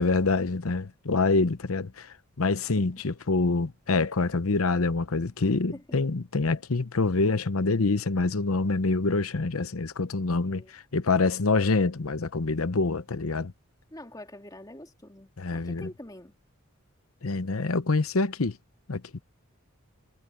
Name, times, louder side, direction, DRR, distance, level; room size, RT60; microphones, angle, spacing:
voice 1, 0.0-13.5 15.4-15.9 17.2-18.6 18.9-19.2, left 3 dB, 85° left, 0.9 m, -26 dB
voice 2, 13.9-16.3, left 1 dB, 20° left, 2.5 m, -45 dB
head